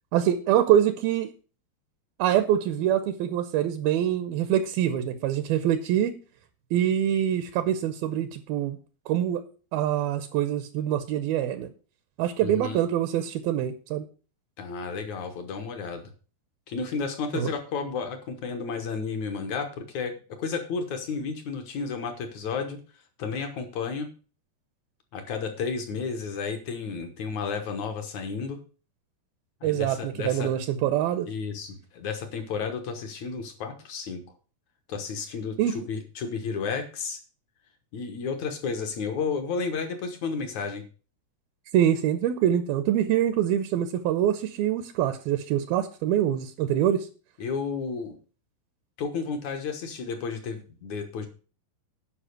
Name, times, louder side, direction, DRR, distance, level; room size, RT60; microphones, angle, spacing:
voice 1, 0.1-1.3 2.2-6.1 6.7-8.8 9.1-9.4 9.7-11.7 12.2-14.0 17.3-17.5 29.6-31.3 35.6-35.8 41.7-47.1, right 11 dB, 80° right, 10 dB, 2.3 m, -25 dB
voice 2, 12.4-12.8 14.6-16.1 16.7-20.1 20.4-22.8 23.2-24.1 25.1-28.6 29.6-30.5 31.3-34.2 34.9-37.2 37.9-40.8 47.4-48.2 49.0-51.3, left 5 dB, 65° left, 7 dB, 2.0 m, -32 dB
10.0 x 5.6 x 6.5 m, 0.37 s
omnidirectional pair, 4.7 m